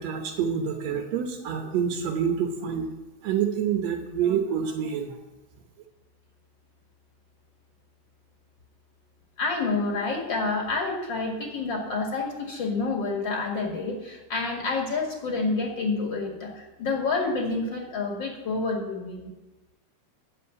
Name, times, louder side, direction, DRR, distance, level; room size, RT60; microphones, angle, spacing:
voice 1, 0.0-2.9 3.2-5.2, right 7 dB, 65° right, 3 dB, 2.1 m, -27 dB
voice 2, 9.4-19.3, left 3 dB, 40° left, 0 dB, 2.3 m, -28 dB
10.5 x 7.5 x 8.4 m, 1.1 s
omnidirectional pair, 3.5 m